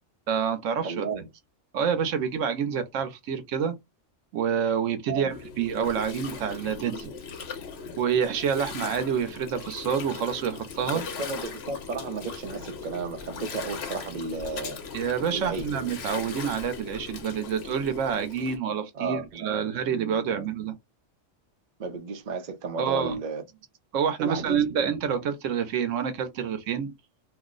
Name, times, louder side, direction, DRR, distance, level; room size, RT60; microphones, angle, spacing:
voice 1, 0.3-1.1 1.7-3.7 4.3-7.1 8.0-11.0 14.9-20.7 22.8-23.2 23.9-26.9, right 7 dB, 85° right, 1.0 m, -27 dB
voice 2, 0.8-1.3 5.1-5.3 10.8-14.8 15.3-15.7 18.9-20.5 21.8-23.4 24.2-24.7, right 4 dB, 45° right, 0.7 m, -33 dB
Gurgling, 5.3-18.6, left 5 dB, 60° left, 0.9 m, -39 dB
2.6 x 2.0 x 3.6 m
omnidirectional pair, 1.3 m